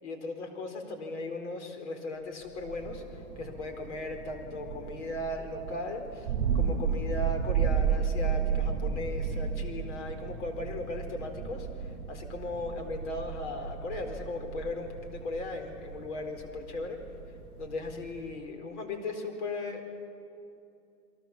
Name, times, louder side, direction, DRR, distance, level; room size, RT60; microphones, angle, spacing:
voice 1, 0.0-17.0 17.6-19.9, left 2 dB, 50° left, 5 dB, 4.4 m, -37 dB
Thunder, 2.6-18.4, right 6 dB, 25° right, 7.2 m, -33 dB
30.0 x 22.5 x 7.3 m, 2.7 s
hypercardioid pair, 165°, 45 cm